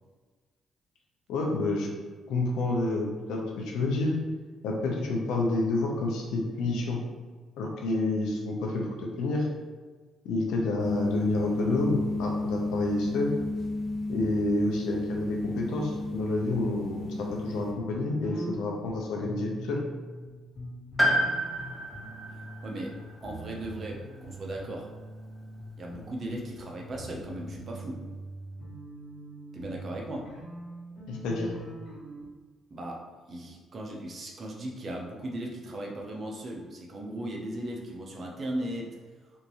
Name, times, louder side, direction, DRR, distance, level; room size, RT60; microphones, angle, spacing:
voice 1, 1.3-1.9 2.3-4.1 4.6-7.0 7.6-8.9 9.2-9.5 10.2-13.3 14.1-19.8 31.1-31.5, left 2 dB, 90° left, 0 dB, 0.6 m, -29 dB
sound 1, 10.8-17.7, left 2 dB, 30° left, 1.0 m, -32 dB
sound 2, 17.0-20.3 20.6-22.9 23.2-25.6 25.9-32.3, right 1 dB, 60° left, 1.3 m, -43 dB
Piano, 21.0-24.9 25.1-25.2 26.4-26.5, equal, 5° right, 0.8 m, -31 dB
voice 2, 22.6-24.9 25.8-28.0 29.5-30.3 32.7-39.0, right 1 dB, 45° right, 0 dB, 0.7 m, -37 dB
3.6 x 2.6 x 3.0 m, 1.4 s
cardioid pair, 90°, 0 cm